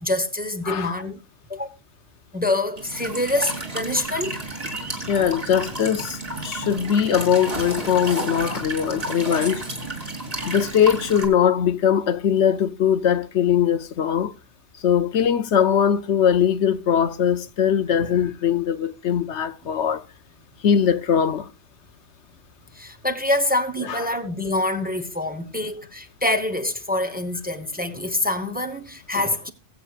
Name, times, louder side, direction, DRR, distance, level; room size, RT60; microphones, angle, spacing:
voice 1, 0.0-1.2 1.5-1.7 2.3-4.4 22.7-29.5, left 1 dB, 10° right, 1.0 m, -25 dB
voice 2, 0.7-1.0 5.1-6.2 6.4-9.6 10.4-14.3 14.8-20.0 20.6-21.5 23.9-24.1, left 8 dB, 70° left, 1.0 m, -21 dB
Walk footsteps / Chirp tweet / Stream, 2.8-11.3, right 2 dB, 30° right, 3.1 m, -31 dB
21.5 x 8.2 x 2.4 m
omnidirectional pair, 1.3 m